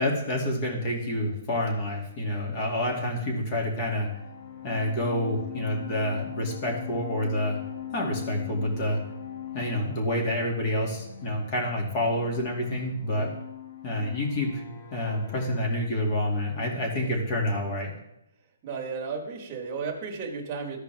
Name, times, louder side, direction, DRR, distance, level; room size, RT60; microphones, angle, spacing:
voice 1, 0.0-4.1 4.6-7.6 7.9-9.0 9.5-13.3 13.8-14.6 14.9-17.9, left 1 dB, 30° left, 0 dB, 2.3 m, -28 dB
sound 1, 3.9-15.6, left 8 dB, 55° left, 2.2 m, -41 dB
voice 2, 18.6-20.8, right 5 dB, 30° right, 2 dB, 1.4 m, -34 dB
14.0 x 4.9 x 3.5 m, 0.85 s
hypercardioid pair, 160°, 0 cm